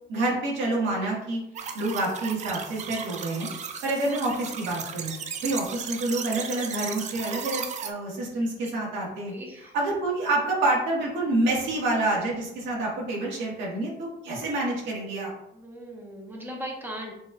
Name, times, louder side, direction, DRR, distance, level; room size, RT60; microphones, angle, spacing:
voice 1, 0.1-1.4 1.7-3.5 3.8-5.1 5.4-9.3 9.7-15.3, right 2 dB, 85° right, -3 dB, 1.6 m, -27 dB
sound 1, 1.6-7.9, right 7 dB, 40° right, 0.4 m, -36 dB
voice 2, 9.2-9.7 15.5-17.1, equal, 10° right, 0 dB, 1.0 m, -38 dB
6.2 x 3.1 x 2.3 m, 0.82 s
cardioid pair, 130°, 19 cm